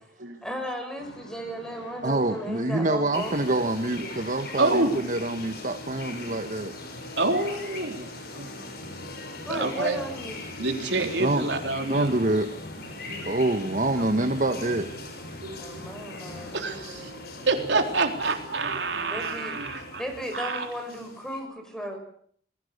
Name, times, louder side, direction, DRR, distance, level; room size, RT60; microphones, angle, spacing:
voice 1, 0.4-3.6 9.4-10.4 15.6-17.4 19.1-19.6 19.9-22.0, equal, 5° left, 4 dB, 6.2 m, -35 dB
sound 1, 1.0-20.3, left 1 dB, 90° left, 5.7 m, -45 dB
voice 2, 2.0-6.7 11.2-11.5 11.9-12.5 13.3-14.9, right 2 dB, 45° right, 7 dB, 1.4 m, -26 dB
sound 2, 3.1-21.4, left 2 dB, 55° left, 6.5 m, -42 dB
voice 3, 4.6-4.9 7.2-8.5 9.5-10.0 10.6-12.2 13.1-13.3 15.4-15.8 16.5-17.1 17.5-20.0 20.3-20.7, right 3 dB, 80° right, 4 dB, 3.9 m, -27 dB
28.5 x 20.5 x 6.7 m, 0.63 s
head